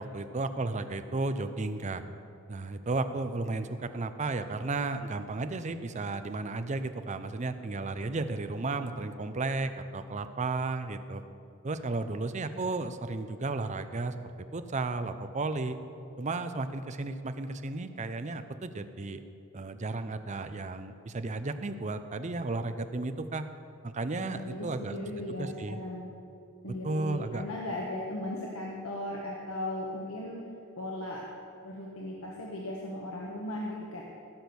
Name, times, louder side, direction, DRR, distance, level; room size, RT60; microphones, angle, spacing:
voice 1, 0.0-2.0 2.5-11.2 11.6-14.1 14.5-15.8 16.2-19.2 19.5-23.5 23.8-24.9 25.4-25.8 26.8-27.4, right 3 dB, 35° right, 10 dB, 0.6 m, -33 dB
voice 2, 24.2-26.1 26.6-30.4 30.8-31.2 31.6-34.0, left 1 dB, 85° left, -3 dB, 1.4 m, -37 dB
16.0 x 6.2 x 7.0 m, 2.6 s
head